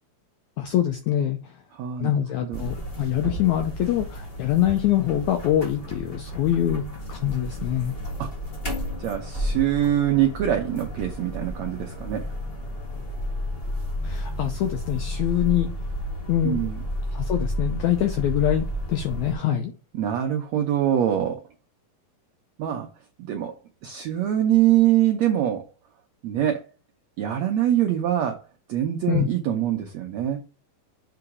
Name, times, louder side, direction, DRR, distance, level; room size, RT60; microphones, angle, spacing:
voice 1, 0.6-1.6 2.0-8.0 14.0-15.7 16.3-16.6 17.1-19.7 29.1-29.3, left 11 dB, 80° left, 6 dB, 1.7 m, -24 dB
voice 2, 1.7-2.1 2.5-2.6 8.2-8.3 9.0-12.3 16.4-16.8 19.9-21.4 22.6-22.9 23.3-23.6 23.8-25.6 26.2-26.6 27.2-28.4 28.7-30.4, right 11 dB, 85° right, 4 dB, 1.5 m, -23 dB
sound 1, 2.5-19.3, equal, 40° left, 0.8 m, -32 dB
7.0 x 3.9 x 4.8 m, 0.33 s
omnidirectional pair, 4.2 m